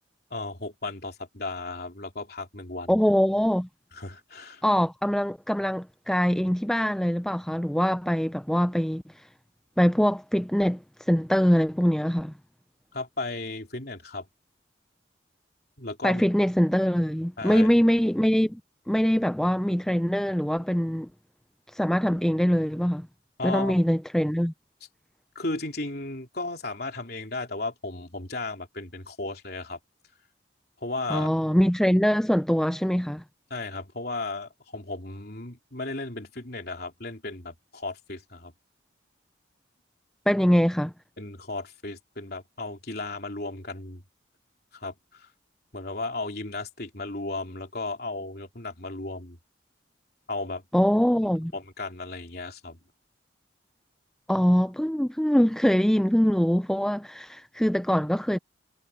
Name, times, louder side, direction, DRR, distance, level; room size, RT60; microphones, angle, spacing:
voice 1, 0.3-3.0 3.9-4.6 12.9-14.3 15.8-16.2 17.4-17.7 23.4-23.8 25.4-29.8 30.8-31.3 33.5-38.5 41.2-44.0 44.7-45.3 45.7-49.4 50.3-50.6 51.5-52.8, left 2 dB, 50° left, 3.5 m, -35 dB
voice 2, 2.9-3.7 4.6-9.0 9.8-12.3 16.0-18.6 18.9-21.1 21.7-23.1 23.4-24.5 31.1-33.2 40.3-40.9 50.7-51.5 54.3-58.4, equal, 5° left, 0.4 m, -23 dB
head